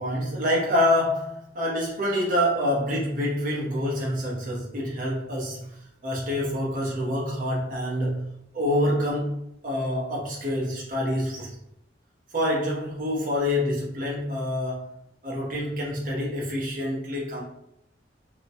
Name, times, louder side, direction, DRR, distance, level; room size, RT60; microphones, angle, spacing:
voice 1, 0.0-5.7 6.0-8.3 8.5-11.6 12.3-14.9 15.2-17.4, left 1 dB, 50° right, -4 dB, 0.8 m, -26 dB
2.8 x 2.2 x 2.7 m, 0.78 s
head